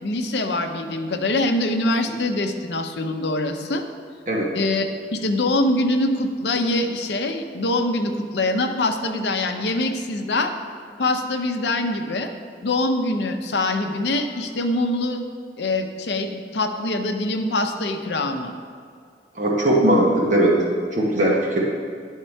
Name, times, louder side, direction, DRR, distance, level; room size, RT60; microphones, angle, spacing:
voice 1, 0.0-3.8 4.5-4.9 5.1-10.5 11.0-12.3 12.6-15.2 15.6-18.5, left 2 dB, 70° left, 5 dB, 0.6 m, -24 dB
voice 2, 19.3-20.7 20.9-21.6, right 1 dB, 45° right, -3 dB, 0.9 m, -19 dB
10.0 x 3.6 x 4.4 m, 2.3 s
head